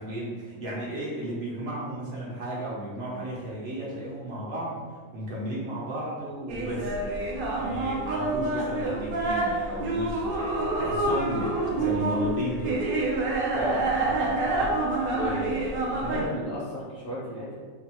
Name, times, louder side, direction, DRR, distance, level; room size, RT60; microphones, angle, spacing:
voice 1, 0.0-6.9 7.5-12.9, right 1 dB, 60° right, -6 dB, 0.7 m, -34 dB
sound 1, 6.5-16.3, right 2 dB, 85° right, 0.4 m, -27 dB
voice 2, 13.5-14.8 15.1-17.5, equal, 65° left, -7 dB, 0.5 m, -34 dB
2.7 x 2.3 x 2.8 m, 1.5 s
omnidirectional pair, 1.5 m